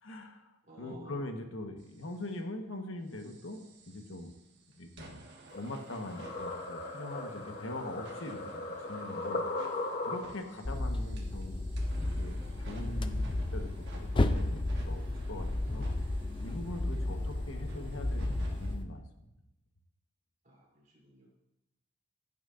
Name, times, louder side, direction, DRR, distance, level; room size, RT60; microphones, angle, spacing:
voice 1, 0.0-0.5 0.8-4.3 4.7-5.2 5.5-8.6 8.9-11.7 12.0-14.6 14.9-16.0 16.4-19.0, left 1 dB, 70° left, 5 dB, 1.2 m, -42 dB
voice 2, 0.6-1.2 16.9-17.2 20.4-21.3, equal, 40° right, -4 dB, 3.3 m, -53 dB
sound 1, 1.8-2.4 3.1-18.8, right 2 dB, 60° right, 1.4 m, -55 dB
sound 2, 5.5-10.6, left 2 dB, 45° left, 1.0 m, -38 dB
sound 3, 10.6-18.8, left 2 dB, 25° left, 0.4 m, -33 dB
15.5 x 9.2 x 2.5 m, 0.89 s
head